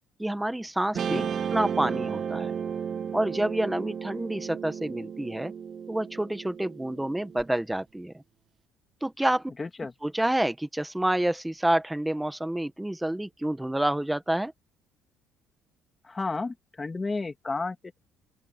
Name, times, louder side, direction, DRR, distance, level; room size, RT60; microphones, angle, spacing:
voice 1, 0.2-1.2 1.5-2.5 3.1-5.5 5.9-8.2 9.0-9.5 10.0-14.5, right 1 dB, 5° right, 1.3 m, -28 dB
Guitar, 1.0-7.4, right 7 dB, 40° right, 1.5 m, -33 dB
voice 2, 9.6-9.9 16.0-17.8, left 3 dB, 20° left, 2.7 m, -32 dB
open air
cardioid pair, 140°, 0 cm